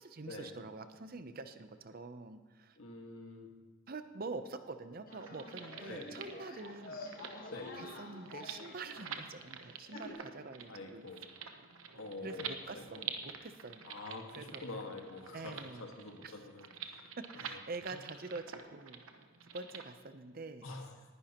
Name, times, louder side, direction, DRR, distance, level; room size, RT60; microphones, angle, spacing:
voice 1, 0.0-2.8 3.9-7.1 7.7-11.1 12.2-13.9 14.4-14.6 15.3-15.9 16.2-16.4 17.3-19.0 19.4-20.7, right 3 dB, 45° right, 10 dB, 0.6 m, -46 dB
voice 2, 2.8-3.5 5.9-6.1 7.5-7.7 10.7-11.2 12.0-13.0 13.8-17.1 20.6-20.9, left 3 dB, 75° left, 2 dB, 1.7 m, -46 dB
sound 1, 5.1-10.1, left 2 dB, 45° left, 1.2 m, -49 dB
sound 2, 5.1-19.9, right 7 dB, 75° right, 0.9 m, -47 dB
18.5 x 11.0 x 2.9 m, 1.3 s
head